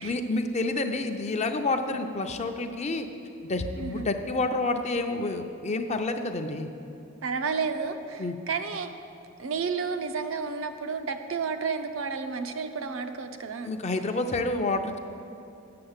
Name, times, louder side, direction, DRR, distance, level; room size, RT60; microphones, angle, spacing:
voice 1, 0.0-3.1 3.5-6.7 8.2-8.4 13.6-15.0, left 2 dB, 35° left, 6 dB, 0.5 m, -29 dB
voice 2, 3.8-4.1 7.2-8.9 9.4-13.7, right 5 dB, 70° right, 7 dB, 0.6 m, -31 dB
7.7 x 6.4 x 8.0 m, 2.7 s
head